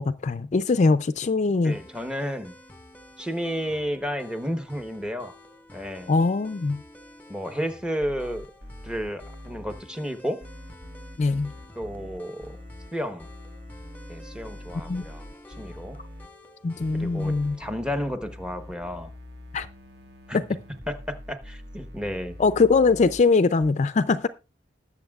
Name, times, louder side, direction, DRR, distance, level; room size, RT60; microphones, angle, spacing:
voice 1, 0.0-1.8 6.1-6.8 11.2-11.5 14.9-15.0 16.6-17.6 19.5-19.7 20.3-20.4 22.4-24.3, left 4 dB, 40° left, 0.4 m, -22 dB
voice 2, 1.6-2.5 3.2-5.3 5.7-6.1 7.3-8.5 8.8-10.4 11.7-12.6 12.9-13.3 14.1-15.2 15.6-16.0 16.9-19.1 20.3-20.4 20.9-22.4, equal, 5° right, 1.0 m, -32 dB
sound 1, 1.7-17.7, left 1 dB, 10° left, 1.2 m, -50 dB
sound 2, 8.0-9.8 10.4-12.9 13.2-16.3 16.8-23.2 23.6-23.7, left 1 dB, 65° right, 1.6 m, -43 dB
20.0 x 7.1 x 2.3 m
head